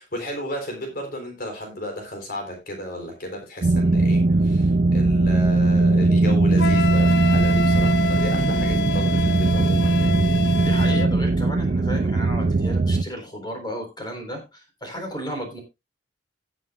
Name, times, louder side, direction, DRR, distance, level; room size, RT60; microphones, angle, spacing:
voice 1, 0.0-10.1, equal, 55° left, 3 dB, 3.8 m, -34 dB
sound 1, 3.6-13.0, right 2 dB, 45° right, 0.5 m, -19 dB
Wind instrument woodwind instrument, 6.6-11.1, left 2 dB, 80° left, 0.9 m, -27 dB
voice 2, 10.6-15.6, equal, 25° left, 3 dB, 4.0 m, -34 dB
18.0 x 7.5 x 2.4 m, 0.22 s
head